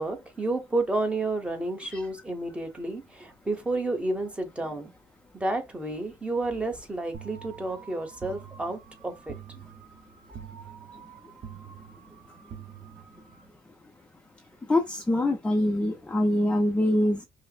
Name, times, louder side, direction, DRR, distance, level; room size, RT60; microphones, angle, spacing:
voice 1, 0.0-4.9 5.3-9.3, right 2 dB, 10° right, 1.0 m, -31 dB
sound 1, 7.1-13.5, right 8 dB, 50° right, 0.8 m, -46 dB
voice 2, 14.7-17.2, left 1 dB, 10° left, 0.5 m, -24 dB
5.4 x 2.1 x 2.3 m
cardioid pair, 115°, 11 cm